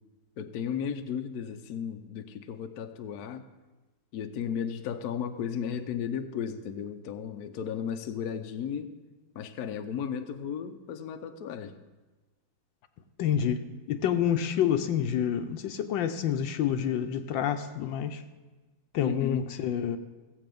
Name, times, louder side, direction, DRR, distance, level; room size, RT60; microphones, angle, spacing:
voice 1, 0.4-3.5 4.1-8.9 9.3-11.8 19.0-19.5, left 7 dB, 65° left, 7 dB, 1.1 m, -35 dB
voice 2, 13.2-18.2 18.9-20.0, left 9 dB, 80° left, 9 dB, 1.4 m, -28 dB
16.0 x 7.9 x 5.2 m, 1.2 s
omnidirectional pair, 2.1 m